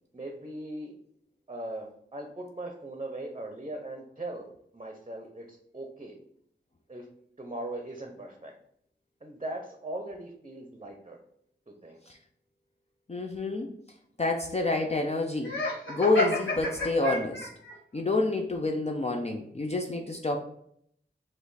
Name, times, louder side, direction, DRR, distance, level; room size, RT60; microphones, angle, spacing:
voice 1, 0.1-0.9 1.5-4.5 4.7-6.1 6.9-7.1 7.4-8.5 9.2-11.2 11.7-12.0, right 1 dB, 30° right, 3 dB, 0.7 m, -39 dB
voice 2, 13.1-13.7 14.2-15.5 15.9-17.5 17.9-20.4, left 2 dB, 35° left, 2 dB, 0.5 m, -28 dB
Laughter, 15.4-17.7, left 2 dB, 85° left, 1.5 m, -30 dB
5.0 x 2.5 x 4.0 m, 0.68 s
wide cardioid pair, 70°, 19 cm